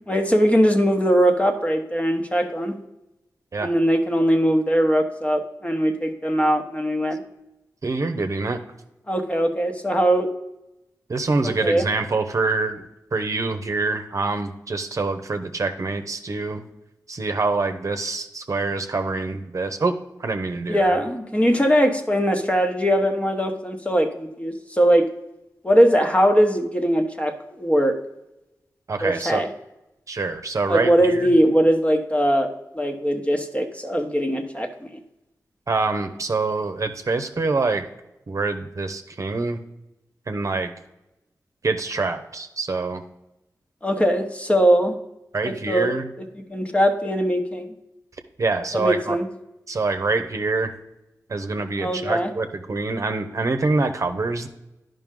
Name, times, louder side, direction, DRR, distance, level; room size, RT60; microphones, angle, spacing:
voice 1, 0.1-2.7 3.6-7.2 9.1-10.3 11.4-11.8 20.7-25.1 25.6-28.0 29.0-29.5 30.7-35.0 43.8-44.9 45.4-45.9 46.5-47.7 48.7-49.3 51.8-52.3, equal, 20° left, 5 dB, 1.1 m, -20 dB
voice 2, 7.8-8.6 11.1-12.8 13.1-16.6 17.1-19.9 20.2-21.0 28.9-29.4 30.1-31.3 35.7-37.8 38.3-39.6 40.3-40.7 41.6-43.0 45.3-46.1 48.4-49.2 49.7-50.7 51.3-54.5, right 3 dB, 55° right, 7 dB, 0.8 m, -25 dB
10.5 x 5.5 x 3.7 m, 0.94 s
cardioid pair, 65°, 7 cm